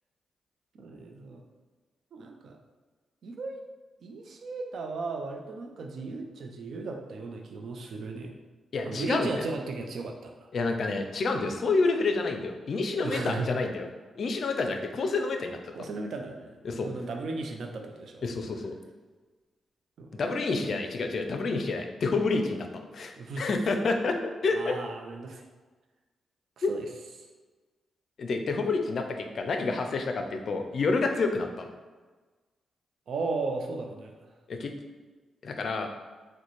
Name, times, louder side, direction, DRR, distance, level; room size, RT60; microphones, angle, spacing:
voice 1, 0.7-1.4 2.1-2.6 3.2-3.6 4.0-8.3 8.8-10.5 12.9-13.6 15.7-18.2 20.0-20.2 20.5-20.8 23.2-23.5 24.5-25.4 26.6-26.9 27.2-27.3 33.1-34.3, right 3 dB, 70° right, 3 dB, 0.4 m, -36 dB
voice 2, 8.7-9.4 10.5-13.9 14.2-15.9 16.6-16.9 18.2-18.7 20.1-24.8 26.6-26.7 28.2-31.7 34.5-34.7 35.4-35.9, left 3 dB, 60° left, 5 dB, 0.4 m, -29 dB
3.9 x 2.1 x 3.0 m, 1.3 s
supercardioid pair, 45°, 0 cm